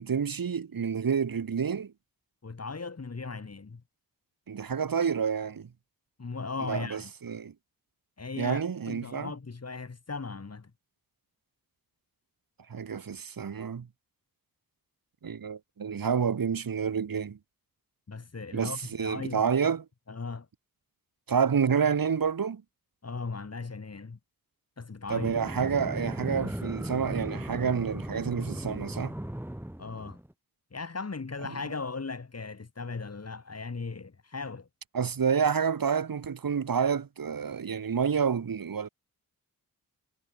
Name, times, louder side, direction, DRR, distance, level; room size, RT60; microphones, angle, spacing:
voice 1, 0.0-1.9 4.5-5.7 6.7-7.5 8.4-9.3 12.7-13.9 15.2-17.4 18.5-19.8 21.3-22.6 25.1-29.1 34.9-38.9, right 6 dB, 70° right, 2.6 m, -29 dB
voice 2, 2.4-3.8 6.2-7.1 8.2-10.7 18.1-19.5 20.1-20.5 23.0-24.2 24.8-25.3 29.8-30.2 30.7-34.7, left 4 dB, 45° left, 5.7 m, -37 dB
sound 1, 25.1-30.3, right 1 dB, 5° right, 6.0 m, -37 dB
wide cardioid pair, 110°, 36 cm